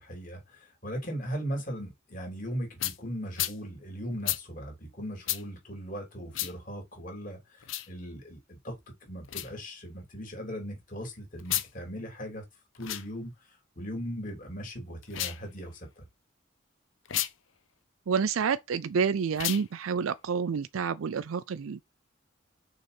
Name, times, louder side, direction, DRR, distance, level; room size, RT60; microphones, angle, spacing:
voice 1, 0.0-8.7 9.0-12.4 12.7-16.0, equal, 40° left, 3.3 m, -38 dB
sound 1, 2.8-3.0 3.4-3.6 4.2-4.4 5.3-5.4 6.3-6.5 7.6-7.9 9.3-9.5 11.4-11.7 12.8-13.1 15.0-15.4 17.1-17.3 19.3-19.7, left 13 dB, 70° left, 0.8 m, -31 dB
voice 2, 18.1-21.8, right 6 dB, 85° right, 0.4 m, -29 dB
6.3 x 4.0 x 5.2 m
head